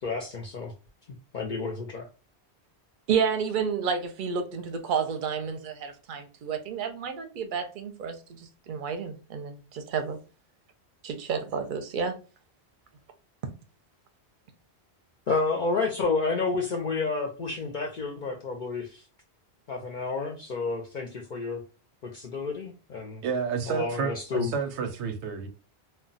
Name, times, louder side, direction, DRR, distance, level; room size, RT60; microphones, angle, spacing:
voice 1, 0.0-0.7 1.1-2.1 15.3-19.0 19.7-21.6 22.0-23.2 23.7-24.5, left 4 dB, 55° left, 0.6 m, -30 dB
voice 2, 3.1-8.2 8.7-10.2 11.0-12.2, right 6 dB, 55° right, 0.7 m, -30 dB
voice 3, 23.2-25.5, right 6 dB, 90° right, 0.9 m, -30 dB
2.2 x 2.1 x 3.8 m
omnidirectional pair, 1.1 m